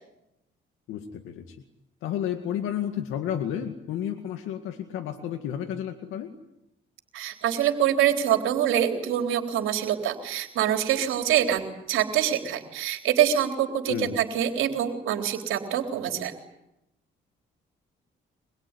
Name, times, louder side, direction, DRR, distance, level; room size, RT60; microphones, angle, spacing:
voice 1, 0.9-1.6 2.0-6.3 13.9-14.2, left 10 dB, 90° left, 5 dB, 2.2 m, -31 dB
voice 2, 7.1-11.6 11.9-16.3, right 10 dB, 85° right, 5 dB, 3.8 m, -25 dB
25.5 x 22.5 x 9.9 m, 0.88 s
cardioid pair, 90°, 20 cm